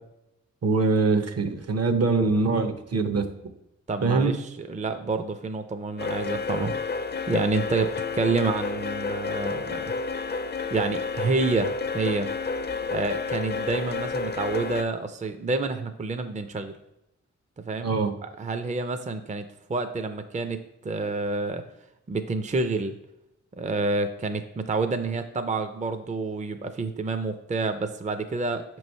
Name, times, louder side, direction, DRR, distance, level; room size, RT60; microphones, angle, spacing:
voice 1, 0.6-3.3 4.0-4.3 17.8-18.1, right 3 dB, 55° right, 8 dB, 0.7 m, -23 dB
voice 2, 3.9-6.7 7.3-9.9 10.7-12.3 12.9-16.8 17.7-21.6 22.1-22.9 23.6-28.6, right 3 dB, 25° right, 8 dB, 0.4 m, -28 dB
sound 1, 6.0-14.8, left 4 dB, 35° left, 0.4 m, -30 dB
6.0 x 3.1 x 5.3 m, 0.88 s
cardioid pair, 50°, 29 cm